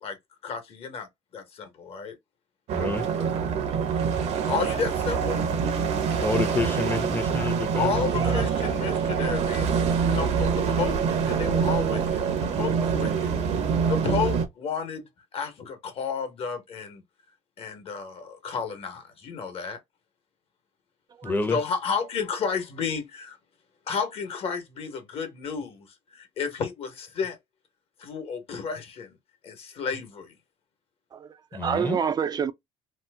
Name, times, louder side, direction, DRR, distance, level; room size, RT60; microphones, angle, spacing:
voice 1, 0.4-1.1 1.3-2.1 4.5-5.5 7.8-9.8 10.1-13.3 13.9-15.0 15.3-17.0 17.6-19.8 21.5-23.4 23.9-27.4 28.0-29.2 29.4-30.3, left 6 dB, 50° left, 1.1 m, -32 dB
voice 2, 2.7-3.1 6.2-8.4 21.2-21.6 31.5-32.1, left 3 dB, 15° left, 0.7 m, -29 dB
sound 1, 2.7-14.5, right 6 dB, 60° right, 0.8 m, -25 dB
voice 3, 8.0-8.4 21.2-21.3 31.1-32.5, right 7 dB, 30° right, 0.4 m, -28 dB
2.9 x 2.0 x 3.4 m
cardioid pair, 100°, 13 cm